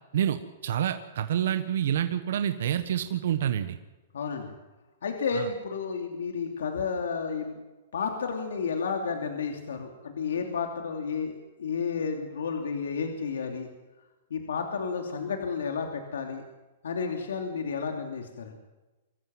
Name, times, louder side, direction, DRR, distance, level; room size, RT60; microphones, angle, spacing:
voice 1, 0.1-3.8 5.3-5.5, right 10 dB, 70° right, 9 dB, 1.3 m, -28 dB
voice 2, 4.1-4.5 5.0-7.6 7.9-11.3 11.6-13.7 14.3-16.4 16.8-18.6, left 5 dB, 85° left, 3 dB, 2.9 m, -31 dB
24.5 x 14.5 x 7.7 m, 1.1 s
hypercardioid pair, 145°, 0 cm